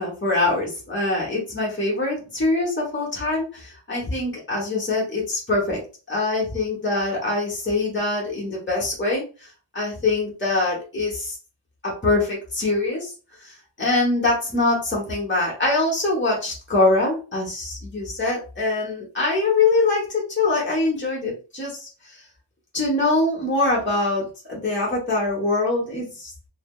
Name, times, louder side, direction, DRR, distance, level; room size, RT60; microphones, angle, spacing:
voice 1, 0.0-5.8 6.1-9.2 9.7-11.4 11.8-13.1 13.4-21.9 22.7-26.3, left 2 dB, 25° left, -3 dB, 1.1 m, -23 dB
3.3 x 2.0 x 2.3 m, 0.34 s
wide cardioid pair, 55°, 48 cm